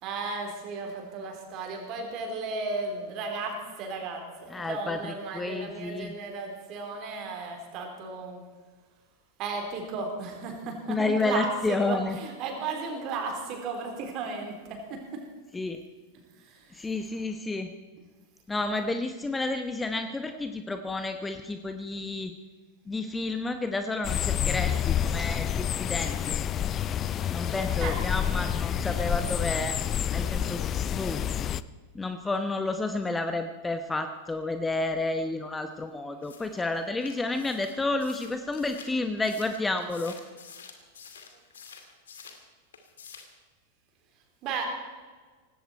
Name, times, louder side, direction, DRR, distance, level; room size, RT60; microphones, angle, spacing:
voice 1, 0.0-8.4 9.4-15.2 16.4-16.9 27.8-28.0 44.4-44.7, right 4 dB, 40° right, 3 dB, 4.1 m, -35 dB
voice 2, 4.5-6.1 10.9-12.2 15.5-15.8 16.7-17.7 18.5-22.3 22.9-26.5 27.3-30.6 30.9-31.2 31.9-40.2, left 2 dB, 10° left, 8 dB, 1.0 m, -30 dB
sound 1, 24.0-31.6, left 9 dB, 30° left, 0.5 m, -28 dB
sound 2, 36.2-42.4 42.7-43.4, left 6 dB, 65° left, 2.2 m, -49 dB
18.5 x 16.5 x 4.6 m, 1.4 s
figure-of-eight pair, 90°, 0 cm